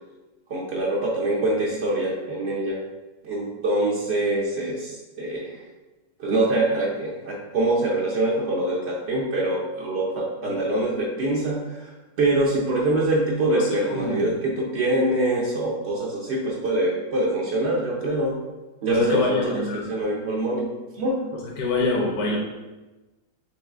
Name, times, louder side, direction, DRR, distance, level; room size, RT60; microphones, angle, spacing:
voice 1, 0.5-2.8 3.2-5.6 6.2-11.9 12.2-18.4 18.8-20.7 20.9-21.2, right 1 dB, 75° right, -3 dB, 0.6 m, -24 dB
voice 2, 13.5-14.2 18.9-19.9 21.6-22.4, left 2 dB, 65° left, -3 dB, 1.1 m, -25 dB
4.6 x 3.1 x 3.6 m, 1.1 s
omnidirectional pair, 2.0 m